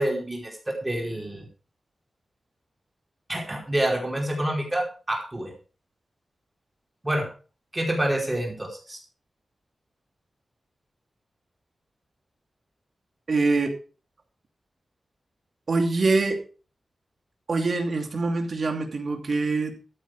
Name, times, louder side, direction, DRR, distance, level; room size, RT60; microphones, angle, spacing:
voice 1, 0.0-1.4 3.3-5.5 7.0-7.3 7.7-9.0, right 1 dB, 15° right, 0 dB, 4.8 m, -27 dB
voice 2, 13.3-13.7 15.7-16.4 17.5-19.8, right 3 dB, 55° right, 4 dB, 2.7 m, -24 dB
14.0 x 8.8 x 4.8 m, 0.37 s
wide cardioid pair, 135°, 0 cm